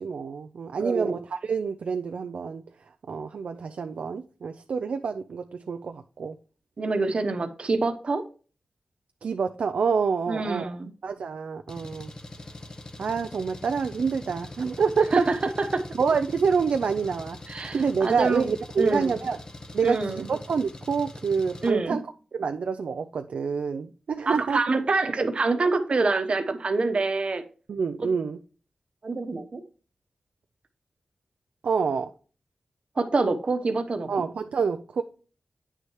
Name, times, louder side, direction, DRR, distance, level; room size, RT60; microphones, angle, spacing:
voice 1, 0.0-2.6 3.1-6.4 9.2-10.7 11.0-12.1 13.0-15.3 15.9-17.4 17.7-19.4 19.7-22.1 22.3-24.6 27.7-28.4 31.6-32.1 34.1-35.0, right 5 dB, 80° right, 0.4 m, -27 dB
voice 2, 6.8-8.2 10.3-10.9 15.1-15.8 17.5-18.5 18.8-19.2 19.8-20.3 21.6-22.0 24.3-27.4 29.0-29.6 33.0-34.1, right 3 dB, 55° right, 1.0 m, -26 dB
Engine, 11.7-21.7, left 2 dB, 35° left, 1.0 m, -42 dB
9.0 x 6.5 x 3.1 m
wide cardioid pair, 70°, 2 cm